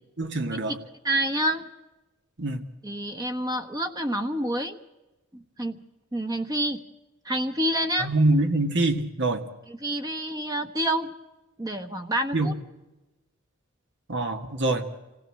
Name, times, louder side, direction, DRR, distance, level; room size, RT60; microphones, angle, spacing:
voice 1, 0.2-0.8 2.4-2.6 8.0-9.4 12.3-12.5 14.1-14.8, right 2 dB, 60° right, 6 dB, 2.0 m, -24 dB
voice 2, 1.0-1.7 2.8-4.8 5.3-5.8 6.1-6.8 7.2-8.1 9.7-11.1 11.6-12.6, right 1 dB, 20° right, 7 dB, 1.2 m, -28 dB
26.5 x 16.5 x 7.7 m, 1.1 s
head